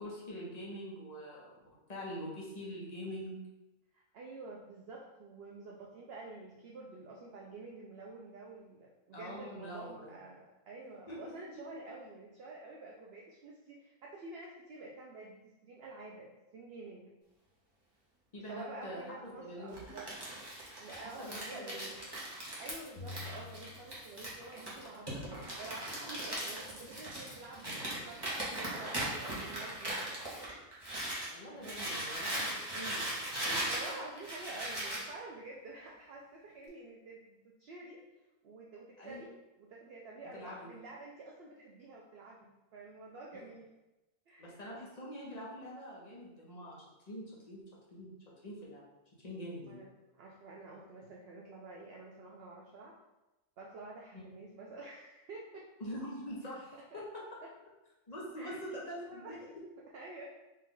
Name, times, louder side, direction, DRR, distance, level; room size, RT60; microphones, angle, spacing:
voice 1, 0.0-1.6 1.9-3.4 9.1-10.1 10.8-11.2 11.5-11.6 18.3-19.8 21.2-21.9 31.3-33.0 33.5-33.6 39.0-39.2 40.3-40.7 44.4-47.6 47.9-48.1 48.4-48.8 49.2-49.8 54.1-54.2 55.8-57.2 58.1-59.5, equal, 30° left, -4 dB, 0.9 m, -44 dB
voice 2, 3.9-17.1 18.5-20.2 20.8-22.1 22.6-25.2 25.6-30.0 31.5-32.0 33.7-38.0 38.4-43.7 44.3-44.5 49.7-49.9 50.2-53.0 53.6-55.7 56.7-57.0 57.4-57.5 58.4-58.6 59.0-59.4 59.9-60.2, right 2 dB, 65° right, -2 dB, 0.6 m, -49 dB
Crumpling crinkling, 19.7-31.3 31.6-35.1, right 1 dB, 20° right, 0.9 m, -39 dB
sound 1, 23.0-24.7, left 4 dB, 75° left, 1.0 m, -48 dB
4.2 x 2.4 x 3.8 m, 1.0 s
omnidirectional pair, 1.5 m